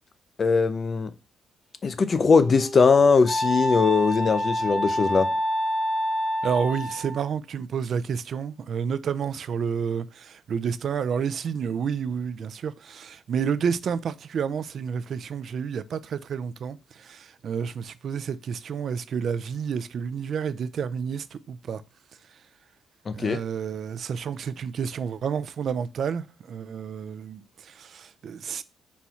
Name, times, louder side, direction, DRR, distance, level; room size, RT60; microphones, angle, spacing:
voice 1, 0.4-1.1 1.8-5.3 23.1-23.4, left 5 dB, 40° left, 0.5 m, -20 dB
Wind instrument woodwind instrument, 1.9-7.4, equal, 5° left, 0.9 m, -28 dB
voice 2, 6.4-21.8 23.1-28.6, right 7 dB, 60° right, 0.3 m, -30 dB
4.1 x 2.3 x 4.3 m
cardioid pair, 85°, 0 cm